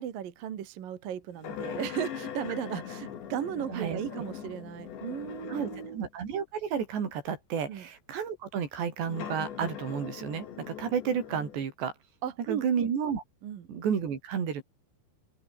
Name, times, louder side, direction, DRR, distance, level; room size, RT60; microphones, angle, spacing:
voice 1, 0.0-6.1 7.7-7.9 12.2-12.9 13.4-13.7, right 9 dB, 60° right, 3.4 m, -36 dB
sound 1, 1.4-6.1 6.8-6.9 9.0-11.6, left 9 dB, 80° left, 5.3 m, -41 dB
voice 2, 3.7-4.0 5.5-11.9 12.5-13.2 13.7-14.6, right 7 dB, 75° right, 6.1 m, -31 dB
open air
omnidirectional pair, 5.0 m